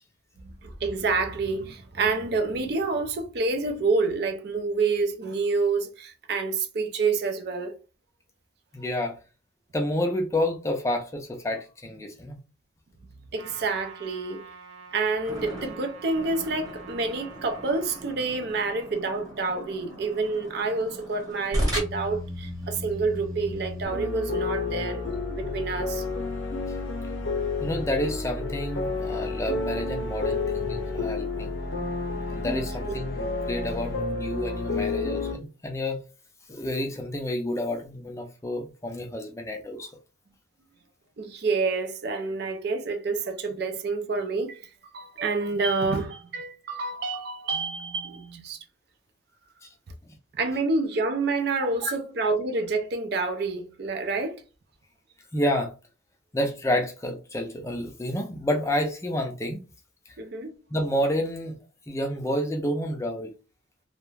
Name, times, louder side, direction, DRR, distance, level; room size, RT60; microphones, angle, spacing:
voice 1, 0.4-7.8 13.3-14.4 14.9-26.0 32.9-33.0 33.7-33.8 34.5-34.6 41.2-48.6 50.3-54.4 60.2-60.5, right 3 dB, 55° right, 0.4 m, -28 dB
voice 2, 8.7-9.1 9.7-12.4 27.6-31.5 32.3-36.0 36.5-39.9 49.6-49.7 51.8-51.9 55.3-55.7 56.3-59.6 60.7-61.6 61.9-63.3, left 1 dB, 15° left, 0.4 m, -29 dB
Trumpet, 13.4-18.1, right 6 dB, 70° right, 0.8 m, -47 dB
sound 1, 15.2-23.9, equal, 20° right, 1.0 m, -35 dB
sound 2, 23.8-35.3, left 3 dB, 80° left, 0.6 m, -30 dB
2.3 x 2.1 x 3.1 m
head